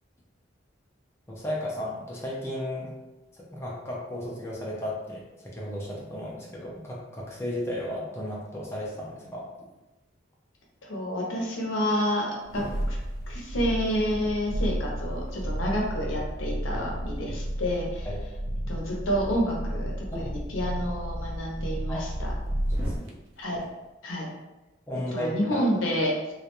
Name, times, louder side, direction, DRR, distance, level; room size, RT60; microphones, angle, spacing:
voice 1, 1.3-2.9 3.5-9.5 16.7-16.8 18.0-18.2 20.1-20.3 21.9-22.1 22.7-22.9 24.9-25.6, left 1 dB, 15° left, -5 dB, 0.4 m, -34 dB
voice 2, 10.8-13.0 13.3-18.1 18.7-22.3 23.4-23.6 24.0-24.3 25.1-26.1, equal, 85° left, -2 dB, 0.7 m, -29 dB
sound 1, 12.4-23.1 23.5-23.6, equal, 85° right, 0.4 m, -32 dB
2.3 x 2.1 x 2.9 m, 1.0 s
head